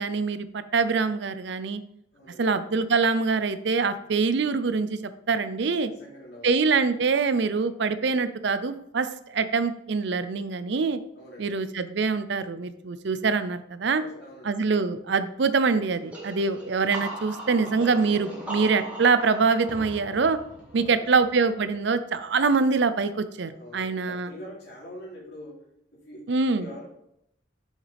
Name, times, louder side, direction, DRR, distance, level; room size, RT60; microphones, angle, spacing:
voice 1, 0.0-1.8 2.4-5.0 5.3-5.9 6.4-11.0 11.4-14.0 14.5-20.4 20.7-24.3 26.3-26.7, right 4 dB, 60° right, 12 dB, 0.5 m, -24 dB
voice 2, 2.1-2.4 5.9-6.6 11.1-11.6 14.0-14.8 20.7-21.1 23.5-25.6 25.9-26.9, equal, 55° left, -5 dB, 3.1 m, -44 dB
sound 1, 16.1-21.7, right 1 dB, 5° right, 1.9 m, -39 dB
7.0 x 6.3 x 3.4 m, 0.78 s
head